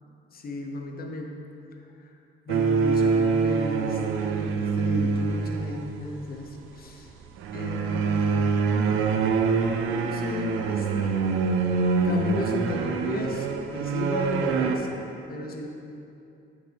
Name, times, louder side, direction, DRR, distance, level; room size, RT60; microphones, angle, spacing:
voice 1, 0.3-1.4 2.0-2.2 2.5-7.1 7.5-9.3 9.5-11.2 12.0-13.5 13.7-14.9 15.3-15.7, left 2 dB, 50° left, 2 dB, 1.0 m, -34 dB
sound 1, 2.5-6.1 7.4-14.8, right 5 dB, 85° right, 0.6 m, -25 dB
7.8 x 6.4 x 3.5 m, 2.7 s
cardioid pair, 90°, 20 cm